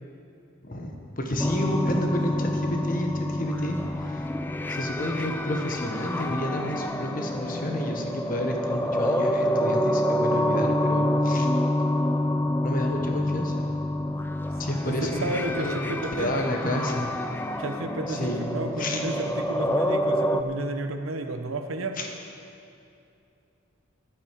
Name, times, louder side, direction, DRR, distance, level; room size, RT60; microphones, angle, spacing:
voice 1, 0.6-4.3 4.7-11.5 12.6-13.7 14.6-17.1 18.1-18.4 18.8-19.0 22.0-22.1, left 1 dB, 40° left, 2 dB, 1.3 m, -30 dB
sound 1, 1.4-20.4, left 1 dB, 10° left, 0.4 m, -27 dB
voice 2, 14.8-16.3 17.6-22.0, right 2 dB, 80° right, 6 dB, 0.9 m, -32 dB
11.0 x 8.7 x 7.5 m, 2.6 s
head